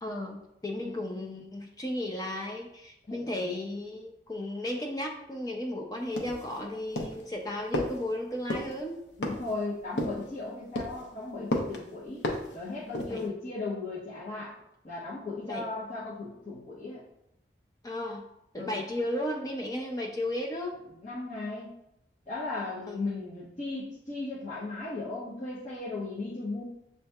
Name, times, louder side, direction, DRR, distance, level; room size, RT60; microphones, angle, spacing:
voice 1, 0.0-9.0 13.1-13.2 15.4-15.7 17.8-18.2 18.5-20.8 22.9-23.0, left 1 dB, 20° left, 1 dB, 0.4 m, -34 dB
voice 2, 3.1-3.5 9.2-12.2 12.5-14.5 14.8-17.0 18.6-18.8 21.0-21.7 22.3-26.6, left 3 dB, 40° left, -8 dB, 0.9 m, -36 dB
sound 1, 6.2-6.6 7.0-7.3 7.7-8.0 8.5-8.7 9.2-9.5 10.0-10.3 10.8-11.0 11.5-11.8 12.2-12.6 12.9-13.3, left 1 dB, 85° left, 0.7 m, -32 dB
7.4 x 2.7 x 2.3 m, 0.81 s
head